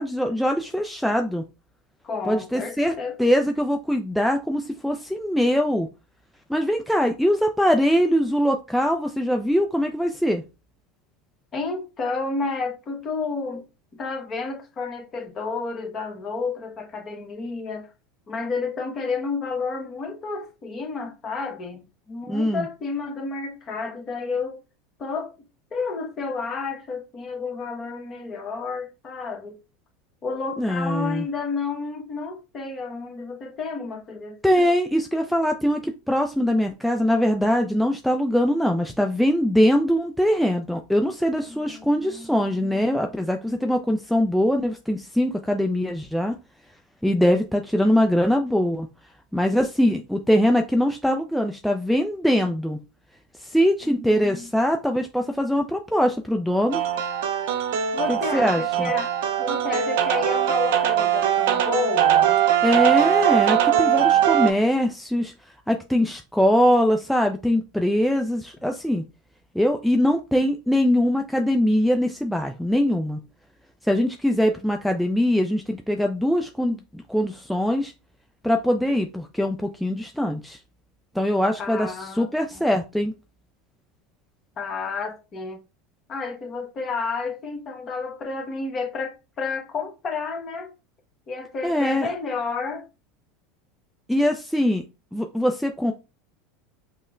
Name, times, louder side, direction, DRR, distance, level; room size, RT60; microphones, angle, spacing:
voice 1, 0.0-1.4 2.3-2.9 3.2-5.9 6.5-10.4 22.3-22.7 30.6-31.2 34.4-46.4 47.0-48.9 49.3-52.8 53.4-56.8 58.1-58.9 62.6-65.3 65.7-69.0 69.5-73.2 73.8-77.9 78.4-80.6 81.2-83.1 91.6-92.1 94.1-94.8 95.1-95.9, equal, ahead, 0.4 m, -22 dB
voice 2, 2.0-3.2 11.5-13.7 13.9-17.9 18.3-24.6 25.0-25.3 25.7-29.6 30.2-34.7 41.5-43.2 53.8-54.5 57.9-62.4 81.6-82.6 84.6-85.6 86.1-90.7 91.3-92.8, left 4 dB, 35° left, 1.1 m, -31 dB
sound 1, 56.7-64.5, right 10 dB, 75° right, 0.5 m, -21 dB
5.4 x 2.1 x 2.5 m
supercardioid pair, 100°, 0 cm